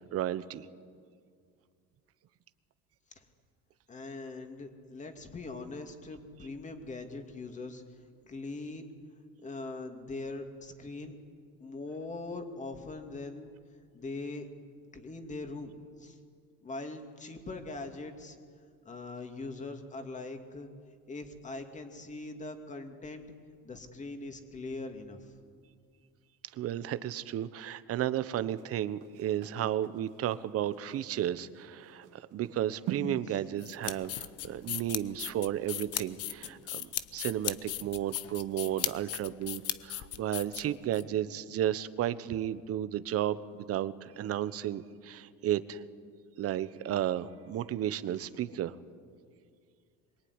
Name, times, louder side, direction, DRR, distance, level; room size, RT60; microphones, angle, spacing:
voice 1, 0.1-0.7 26.5-45.8 46.4-48.8, right 11 dB, 50° right, 14 dB, 1.1 m, -33 dB
voice 2, 3.9-7.8 8.2-8.9 9.4-11.2 11.6-13.5 13.9-14.5 14.9-15.7 16.0-16.2 16.6-18.4 18.8-20.7 21.1-23.2 23.6-25.2, left 3 dB, 25° left, 5 dB, 2.7 m, -41 dB
sound 1, 28.5-37.0 37.4-37.6, right 7 dB, 70° right, 2.6 m, -46 dB
sound 2, 33.6-41.0, left 13 dB, 50° left, 1.0 m, -37 dB
25.5 x 23.0 x 9.8 m, 2.1 s
cardioid pair, 140°, 31 cm